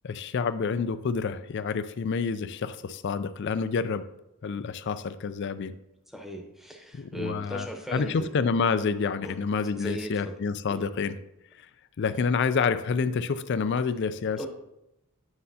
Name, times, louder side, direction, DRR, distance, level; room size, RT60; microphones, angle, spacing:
voice 1, 0.0-4.0 4.4-5.7 6.9-11.2 12.0-14.5, left 5 dB, 50° left, 13 dB, 0.4 m, -28 dB
voice 2, 6.1-8.3 9.2-9.4 9.7-10.1 10.7-10.8 12.1-12.2 14.4-14.5, right 1 dB, ahead, 2 dB, 0.8 m, -37 dB
9.6 x 6.6 x 2.8 m, 0.88 s
head